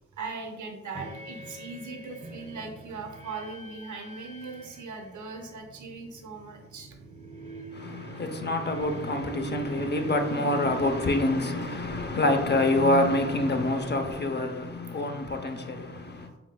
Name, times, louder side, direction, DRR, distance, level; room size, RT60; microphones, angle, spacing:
voice 1, 0.2-7.0 16.1-16.2, right 4 dB, 80° right, 0.8 m, -39 dB
sound 1, 0.9-13.0, right 3 dB, 20° right, 0.7 m, -43 dB
voice 2, 7.7-16.3, left 2 dB, 35° left, 0.7 m, -26 dB
4.6 x 3.7 x 2.2 m
cardioid pair, 45°, 29 cm